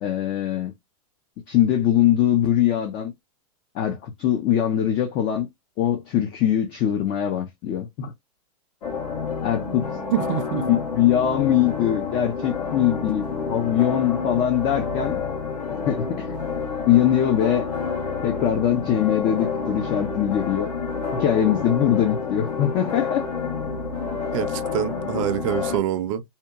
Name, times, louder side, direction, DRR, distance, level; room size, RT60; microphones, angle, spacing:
voice 1, 0.0-0.7 1.5-3.1 3.8-5.5 5.8-8.1 9.4-9.9 10.7-13.2 13.5-15.2 15.7-16.3 16.8-17.7 18.2-20.7 21.1-23.2, left 10 dB, 25° left, 0.3 m, -22 dB
sound 1, 8.8-25.8, left 5 dB, 80° left, 1.3 m, -29 dB
voice 2, 10.1-10.7 24.3-26.2, right 11 dB, 55° right, 0.5 m, -25 dB
2.8 x 2.1 x 2.3 m
supercardioid pair, 150°, 20 cm